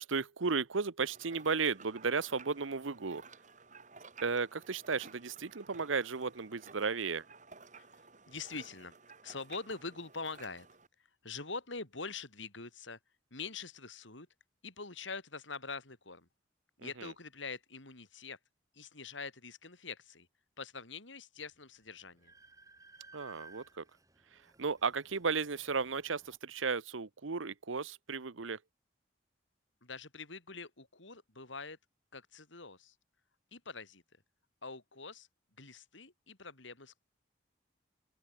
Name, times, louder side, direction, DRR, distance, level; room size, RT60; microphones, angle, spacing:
voice 1, 0.0-3.2 4.2-7.2 16.8-17.1 23.1-23.8 24.6-28.6, right 5 dB, 90° right, 0.9 m, -34 dB
sound 1, 1.0-10.9, right 4 dB, 40° right, 3.3 m, -56 dB
voice 2, 8.3-9.0 9.2-10.7 11.2-13.0 13.3-14.3 14.6-16.3 16.8-18.4 18.7-20.3 20.6-22.3 29.8-31.8 32.1-32.9 33.5-34.0 34.6-35.3 35.6-36.9, left 4 dB, 75° left, 4.4 m, -44 dB
Train, 21.4-21.5 21.8-26.4, right 3 dB, 15° right, 2.6 m, -59 dB
open air
head